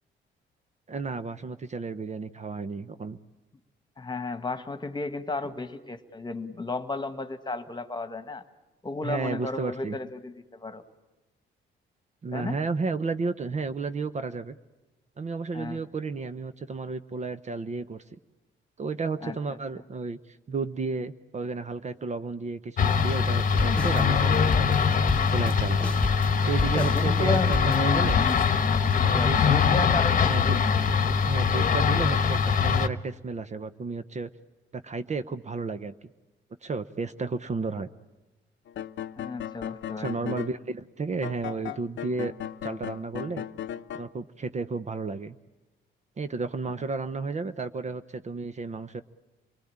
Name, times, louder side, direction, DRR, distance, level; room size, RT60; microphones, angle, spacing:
voice 1, 0.9-3.2 9.0-10.0 12.2-14.5 15.2-18.2 18.8-24.8 25.3-25.9 26.4-28.2 29.0-29.4 30.3-30.6 31.3-34.3 34.7-35.9 36.6-37.9 40.0-42.3 42.6-43.5 43.9-45.4 46.2-49.0, right 4 dB, 35° right, 11 dB, 0.8 m, -32 dB
voice 2, 4.0-8.4 8.8-10.8 12.3-12.6 15.5-15.8 19.2-19.6 26.7-27.5 28.9-30.5 39.2-40.4, left 3 dB, 20° left, 10 dB, 1.6 m, -33 dB
sound 1, 22.8-32.9, left 6 dB, 45° left, 1.1 m, -23 dB
sound 2, 23.4-28.4, left 2 dB, 5° left, 1.5 m, -31 dB
sound 3, 38.7-40.6 41.2-44.1, left 10 dB, 70° left, 0.8 m, -36 dB
26.5 x 20.5 x 8.7 m, 1.1 s
cardioid pair, 90°, 20 cm